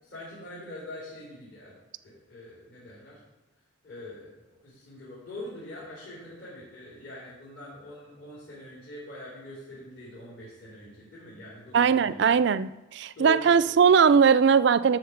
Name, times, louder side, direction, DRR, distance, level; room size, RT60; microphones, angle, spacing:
voice 1, 0.0-1.7 2.0-3.2 3.8-12.4 13.1-13.7, left 1 dB, 60° left, -9 dB, 3.8 m, -43 dB
voice 2, 11.7-15.0, right 6 dB, 55° right, 15 dB, 0.3 m, -20 dB
12.5 x 4.3 x 6.6 m, 1.1 s
head